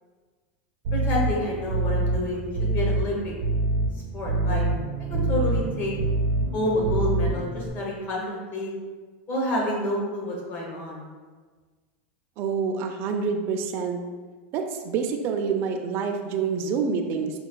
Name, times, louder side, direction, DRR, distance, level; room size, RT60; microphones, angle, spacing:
sound 1, 0.8-7.7, right 2 dB, 75° right, 0.7 m, -26 dB
voice 1, 0.9-3.3 4.1-4.6 5.0-5.9 6.5-8.7 9.3-11.0, left 1 dB, 35° left, -3 dB, 0.9 m, -28 dB
voice 2, 12.4-14.0 14.5-17.3, right 5 dB, 40° right, 4 dB, 0.4 m, -27 dB
5.1 x 2.2 x 2.2 m, 1.4 s
supercardioid pair, 150°, 6 cm